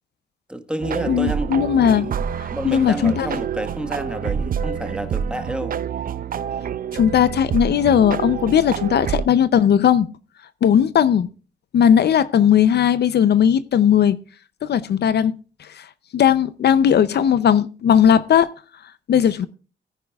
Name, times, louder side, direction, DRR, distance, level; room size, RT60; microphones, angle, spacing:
voice 1, 0.5-1.5 1.9-5.8, right 1 dB, 5° right, 1.4 m, -29 dB
sound 1, 0.8-9.2, right 8 dB, 50° right, 0.5 m, -27 dB
voice 2, 1.1-2.1 2.7-3.3 6.9-10.1 10.6-11.3 11.7-14.2 14.6-15.3 15.8-15.9 16.1-18.5 19.1-19.5, left 9 dB, 65° left, 0.6 m, -17 dB
17.5 x 9.9 x 2.3 m
cardioid pair, 80°, 18 cm